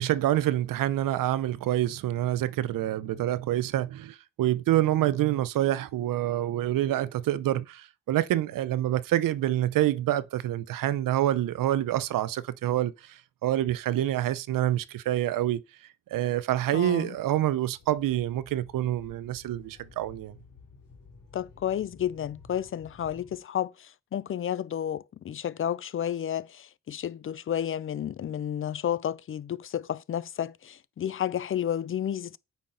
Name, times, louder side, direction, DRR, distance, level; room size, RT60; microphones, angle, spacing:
voice 1, 0.0-15.6 16.1-20.3, right 13 dB, 85° right, 0.6 m, -27 dB
voice 2, 16.7-17.1 21.3-32.4, left 10 dB, 40° left, 0.5 m, -31 dB
sound 1, 17.8-23.4, left 4 dB, 85° left, 2.5 m, -53 dB
8.6 x 5.3 x 3.8 m
cardioid pair, 100°, 32 cm